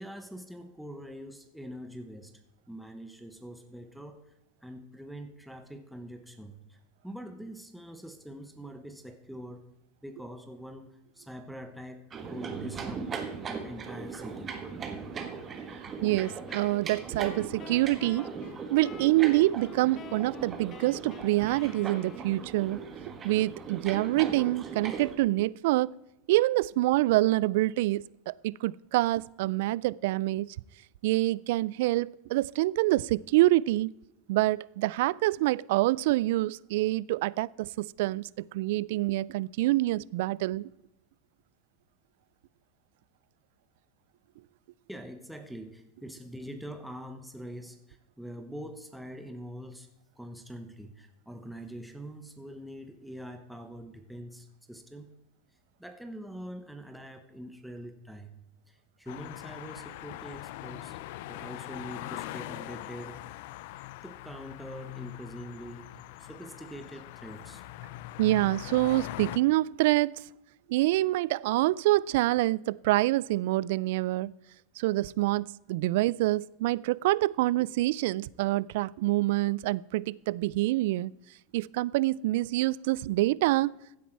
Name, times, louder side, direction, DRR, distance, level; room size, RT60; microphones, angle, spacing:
voice 1, 0.0-2.3 2.7-4.2 4.6-9.6 10.0-12.0 12.3-13.1 13.5-14.6 44.9-49.9 50.2-55.1 55.8-58.4 58.7-61.0 61.3-63.2 64.0-67.6, equal, ahead, 1.0 m, -44 dB
sound 1, 12.1-25.2, right 5 dB, 25° right, 1.5 m, -39 dB
voice 2, 16.0-18.3 18.7-22.8 23.2-25.9 26.3-30.5 31.0-33.9 34.3-40.7 68.2-70.2 70.7-74.3 74.8-81.1 81.5-83.8, right 17 dB, 70° right, 0.3 m, -26 dB
sound 2, 16.1-22.7, left 9 dB, 35° left, 0.7 m, -50 dB
sound 3, 59.1-69.4, left 16 dB, 65° left, 0.5 m, -42 dB
15.5 x 8.4 x 4.6 m
supercardioid pair, 135°, 0 cm